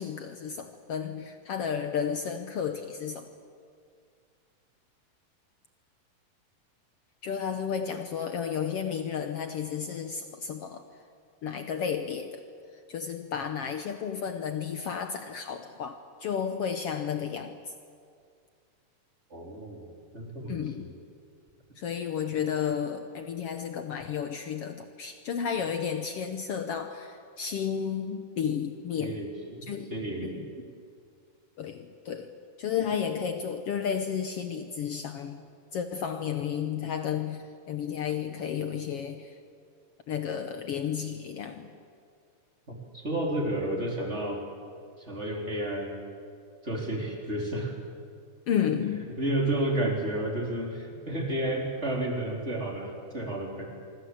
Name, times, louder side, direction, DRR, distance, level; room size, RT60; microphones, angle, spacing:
voice 1, 0.0-3.3 7.2-10.8 11.4-12.4 12.9-17.6 20.5-20.9 21.8-29.2 29.6-29.9 30.2-30.5 31.6-32.3 32.6-35.4 35.7-39.4 40.1-41.7 48.5-49.2, left 7 dB, 80° left, 7 dB, 1.3 m, -32 dB
voice 2, 19.3-20.9 29.0-30.4 42.7-44.4 45.0-46.0 46.6-47.7 49.2-53.6, right 1 dB, 20° right, 0 dB, 3.9 m, -31 dB
25.5 x 24.5 x 8.0 m, 2.2 s
omnidirectional pair, 4.1 m